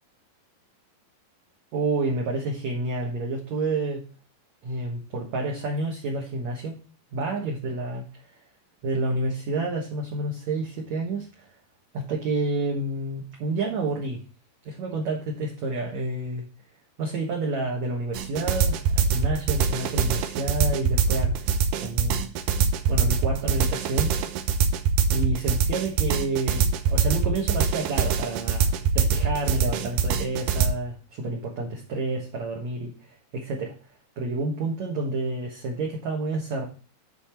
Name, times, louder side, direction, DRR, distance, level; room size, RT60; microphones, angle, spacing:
voice 1, 1.7-4.0 4.6-6.8 7.1-8.2 8.8-11.5 11.9-14.2 14.7-16.4 17.0-22.3 22.9-24.1 25.1-33.8 34.2-36.7, right 2 dB, 60° right, -1 dB, 2.1 m, -29 dB
sound 1, 18.1-30.7, right 7 dB, 80° right, 1.9 m, -23 dB
11.5 x 4.4 x 4.4 m, 0.36 s
omnidirectional pair, 4.9 m